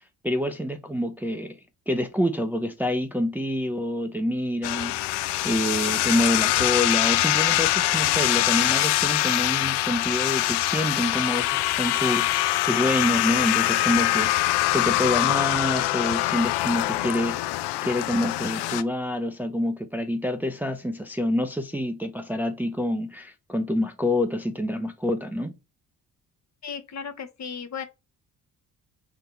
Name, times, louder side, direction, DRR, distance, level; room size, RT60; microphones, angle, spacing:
voice 1, 0.2-1.5 1.9-5.0 5.4-17.4 17.8-25.5, left 1 dB, 5° right, 0.6 m, -27 dB
sound 1, 4.6-18.8, left 16 dB, 65° left, 0.6 m, -24 dB
voice 2, 26.6-27.9, left 6 dB, 40° left, 0.8 m, -35 dB
3.9 x 2.8 x 4.4 m
hypercardioid pair, 45°, 44 cm